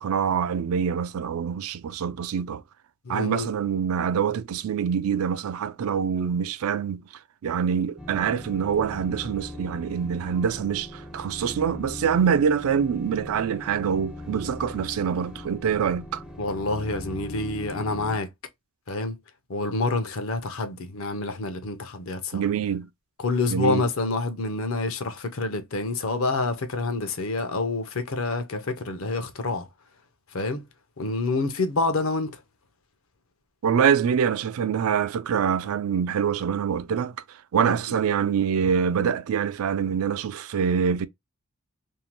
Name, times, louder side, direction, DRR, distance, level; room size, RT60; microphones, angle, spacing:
voice 1, 0.0-2.6 3.1-7.0 7.4-16.2 22.3-22.9 23.5-23.8 33.6-41.1, right 7 dB, 75° right, 0.3 m, -25 dB
voice 2, 3.0-3.5 16.4-18.3 18.9-19.2 19.5-22.4 23.2-29.7 30.3-30.7 31.0-32.4 37.6-38.0, left 3 dB, 70° left, 0.6 m, -27 dB
sound 1, 8.0-18.2, left 2 dB, 5° right, 0.4 m, -40 dB
2.7 x 2.1 x 2.9 m
head